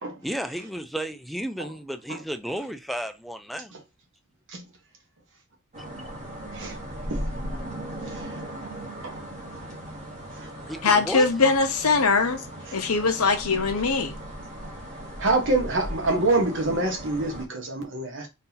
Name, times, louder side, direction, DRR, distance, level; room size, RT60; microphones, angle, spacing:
voice 1, 0.2-3.7 10.7-11.3, equal, ahead, 0.4 m, -33 dB
sound 1, 5.7-17.4, right 1 dB, 35° right, 1.5 m, -37 dB
voice 2, 10.8-12.4 12.7-14.2, left 4 dB, 90° left, 0.9 m, -21 dB
voice 3, 15.2-18.3, right 2 dB, 60° right, 1.3 m, -26 dB
3.9 x 2.8 x 3.9 m
head